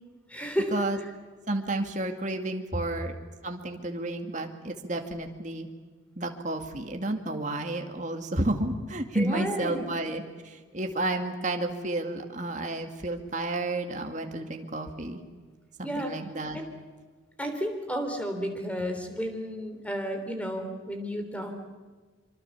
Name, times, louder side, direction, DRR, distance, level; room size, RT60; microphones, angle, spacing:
voice 1, 0.3-0.7 1.0-1.1 2.7-2.8 9.1-9.8 15.8-16.1 16.5-16.7 17.4-21.6, equal, 5° left, 5 dB, 3.3 m, -32 dB
voice 2, 1.5-3.2 3.4-5.7 6.2-15.2 15.8-16.6, right 2 dB, 40° right, 4 dB, 2.2 m, -31 dB
25.0 x 25.0 x 7.2 m, 1.4 s
head